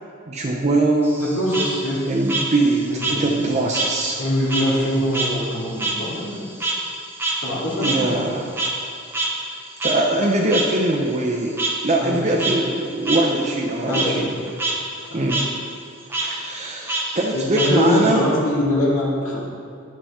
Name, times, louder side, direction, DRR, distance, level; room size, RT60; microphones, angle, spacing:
voice 1, 0.3-1.2 2.1-2.9 3.1-4.2 7.8-8.5 9.8-11.6 11.8-14.3 15.1-15.4 16.2-18.3, right 2 dB, 35° right, -2 dB, 0.6 m, -22 dB
Frog, 1.0-4.0 4.3-8.9 9.1-9.3 9.8-9.9 10.5-10.6 11.6-11.7 12.2-12.5 13.0-13.2 13.6-14.1 14.5-14.7 15.0-15.5 16.1-16.3 16.9-18.1, right 3 dB, 10° right, 1.0 m, -25 dB
voice 2, 1.2-2.0 2.9-3.5 4.2-6.4 7.4-8.2 12.0-12.5 13.8-14.4 15.1-15.2 17.3-19.4, left 1 dB, 75° left, -6 dB, 2.3 m, -23 dB
11.0 x 5.7 x 4.2 m, 2.4 s
head